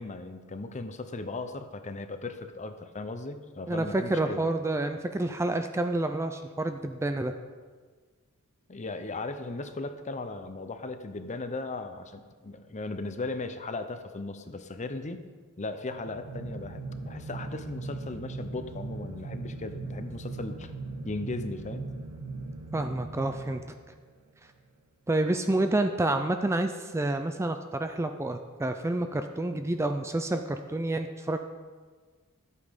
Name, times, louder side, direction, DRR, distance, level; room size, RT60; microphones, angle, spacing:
voice 1, 0.0-4.5 8.7-15.2 15.6-20.7 21.0-21.9, left 3 dB, 35° left, 9 dB, 0.7 m, -37 dB
voice 2, 3.7-7.3 22.7-23.6 25.1-31.4, right 2 dB, 10° right, 7 dB, 0.4 m, -29 dB
sound 1, 15.8-24.2, right 3 dB, 70° right, 1.4 m, -39 dB
12.0 x 8.4 x 5.2 m, 1.5 s
head